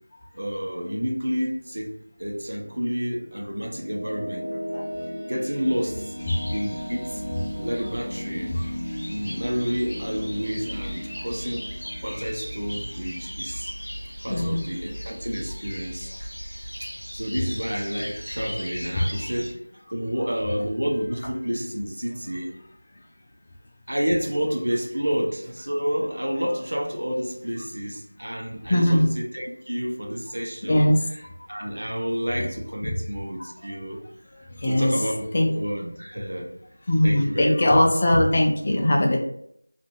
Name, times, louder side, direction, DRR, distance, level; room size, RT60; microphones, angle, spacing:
voice 1, 0.3-1.9 2.2-4.5 5.3-6.2 6.5-7.2 7.5-8.6 9.1-11.7 12.0-13.7 14.2-16.3 16.8-19.6 19.9-22.5 23.9-30.9 31.5-34.0 34.6-36.5 37.0-37.8, equal, 75° right, 1 dB, 0.8 m, -29 dB
sound 1, 3.2-14.3, equal, 20° right, 0.9 m, -36 dB
sound 2, 6.2-19.5, equal, 85° left, 0.9 m, -37 dB
voice 2, 14.3-14.6 28.7-29.1 30.7-31.0 34.6-34.9 35.3-35.5 36.9-39.2, left 1 dB, 25° left, 0 dB, 0.3 m, -20 dB
2.5 x 2.5 x 3.0 m, 0.69 s
figure-of-eight pair, 175°, 0 cm